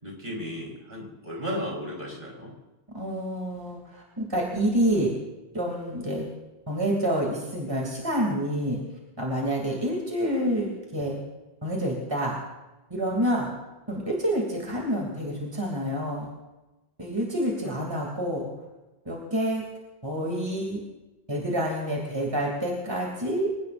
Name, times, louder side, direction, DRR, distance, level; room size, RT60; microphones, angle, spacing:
voice 1, 0.0-2.5, equal, 50° right, -2 dB, 4.7 m, -34 dB
voice 2, 2.9-5.1 5.5-6.3 6.7-8.8 9.2-11.2 11.6-12.3 12.9-13.5 13.9-16.3 17.0-18.5 19.0-19.6 20.0-20.8 21.3-23.5, equal, 25° right, -2 dB, 2.9 m, -28 dB
26.5 x 18.0 x 2.6 m, 1.0 s
omnidirectional pair, 1.1 m